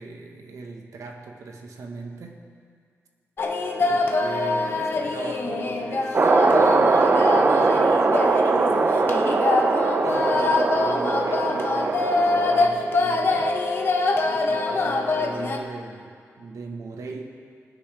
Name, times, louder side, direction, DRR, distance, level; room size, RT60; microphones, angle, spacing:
voice 1, 0.0-2.5 3.8-9.0 10.0-13.5 14.2-17.2, right 3 dB, 85° right, 3 dB, 1.4 m, -39 dB
sound 1, 3.4-15.6, left 3 dB, 45° left, 1.0 m, -24 dB
sound 2, 6.1-12.7, right 4 dB, 35° right, 0.5 m, -21 dB
20.0 x 9.7 x 3.4 m, 2.1 s
wide cardioid pair, 155°, 5 cm